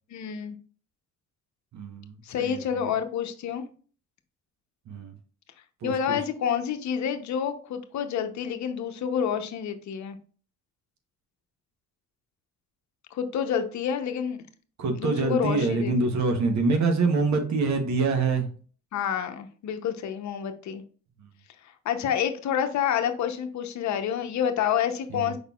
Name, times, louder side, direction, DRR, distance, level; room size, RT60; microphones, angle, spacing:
voice 1, 0.1-0.5 2.2-3.7 5.8-10.2 13.1-14.4 15.0-15.9 18.9-20.8 21.6-25.4, left 8 dB, 65° left, 8 dB, 0.7 m, -28 dB
voice 2, 1.7-2.9 4.9-5.2 5.8-6.2 14.8-18.5 21.2-21.3 25.1-25.4, right 3 dB, 65° right, 5 dB, 1.0 m, -26 dB
5.2 x 4.1 x 2.3 m, 0.41 s
cardioid pair, 70°, 30 cm